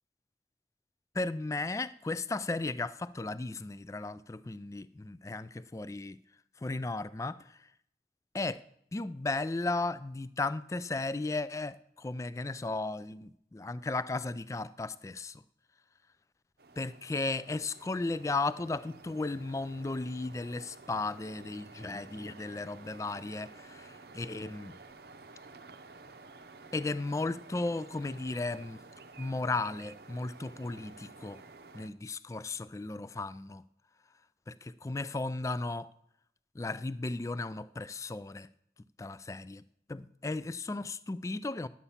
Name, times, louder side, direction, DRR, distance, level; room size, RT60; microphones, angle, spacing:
voice 1, 1.1-6.2 6.6-7.7 8.3-8.6 8.9-15.4 16.8-24.8 26.7-28.8 29.2-31.4 31.7-33.7 34.5-35.9 36.5-38.5 39.0-39.6 39.9-41.7, left 3 dB, 15° left, 0.3 m, -35 dB
sound 1, 16.6-31.9, right 3 dB, 60° right, 0.7 m, -52 dB
10.5 x 8.5 x 5.7 m
head